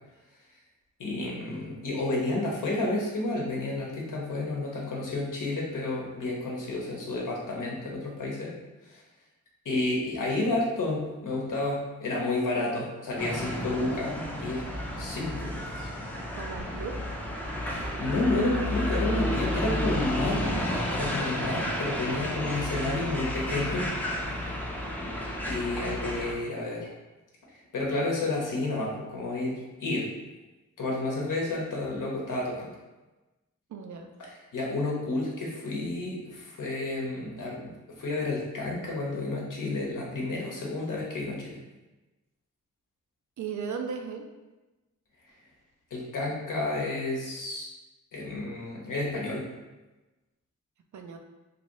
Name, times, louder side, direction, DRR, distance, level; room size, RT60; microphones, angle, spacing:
voice 1, 1.0-8.5 8.8-9.0 9.6-14.7 15.0-15.9 17.6-23.9 24.2-24.5 25.4-26.9 27.5-30.1 30.8-32.8 34.5-41.6 45.9-47.7 48.1-49.5, left 2 dB, 75° left, -3 dB, 0.9 m, -31 dB
sound 1, 13.2-26.3, left 1 dB, 5° left, 0.5 m, -31 dB
voice 2, 16.4-17.0 33.7-34.1 43.4-44.3 50.9-51.2, right 6 dB, 65° right, 4 dB, 0.5 m, -36 dB
2.8 x 2.6 x 3.0 m, 1.1 s
cardioid pair, 65°, 32 cm